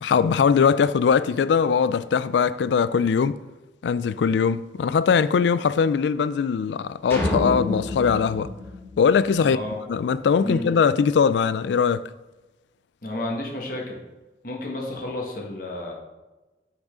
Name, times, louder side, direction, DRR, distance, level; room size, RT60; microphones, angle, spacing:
voice 1, 0.0-3.4 3.8-8.5 9.0-9.6 9.9-12.1, left 6 dB, 80° left, 0.3 m, -21 dB
sound 1, 7.1-9.6, left 1 dB, 15° left, 2.1 m, -28 dB
voice 2, 9.4-9.8 10.4-10.7 13.0-14.0 14.4-15.9, left 1 dB, 50° left, 1.3 m, -31 dB
6.3 x 6.1 x 5.0 m
head